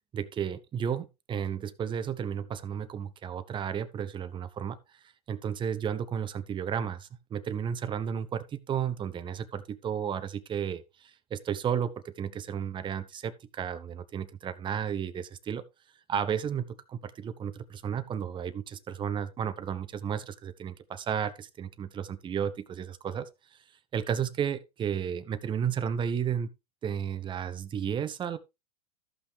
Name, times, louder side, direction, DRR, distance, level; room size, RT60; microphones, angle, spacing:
voice 1, 0.1-4.8 5.3-15.6 16.1-23.3 23.9-26.5 26.8-28.4, right 8 dB, 25° right, 0.9 m, -33 dB
14.0 x 5.7 x 3.4 m
hypercardioid pair, 100°, 20 cm